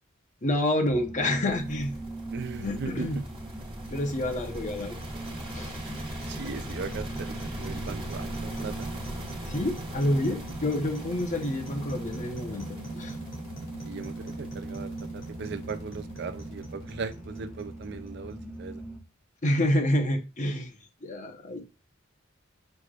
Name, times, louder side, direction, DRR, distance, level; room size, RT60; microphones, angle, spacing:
voice 1, 0.4-1.9 2.6-3.2 3.9-4.9 5.5-5.7 9.4-12.7 12.9-13.1 19.4-20.7 21.0-21.6, left 1 dB, 40° left, 0.9 m, -28 dB
sound 1, 0.9-19.0, right 1 dB, 5° right, 0.6 m, -41 dB
sound 2, 1.5-16.6, right 1 dB, 30° right, 1.7 m, -41 dB
voice 2, 2.3-3.2 6.2-8.9 13.8-18.8, right 4 dB, 60° right, 0.5 m, -38 dB
sound 3, 3.4-18.6, right 2 dB, 85° left, 2.6 m, -43 dB
6.1 x 3.3 x 2.4 m
head